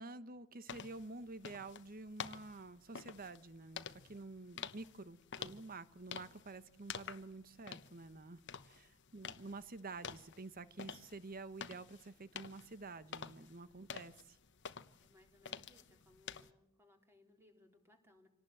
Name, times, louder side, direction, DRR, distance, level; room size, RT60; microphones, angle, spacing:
voice 1, 0.0-14.4, right 3 dB, 45° right, 14 dB, 1.2 m, -50 dB
sound 1, 0.7-16.5, left 7 dB, 60° left, 1.1 m, -50 dB
voice 2, 15.0-18.3, left 1 dB, 10° right, 3 dB, 3.6 m, -67 dB
26.5 x 18.5 x 7.7 m, 0.77 s
head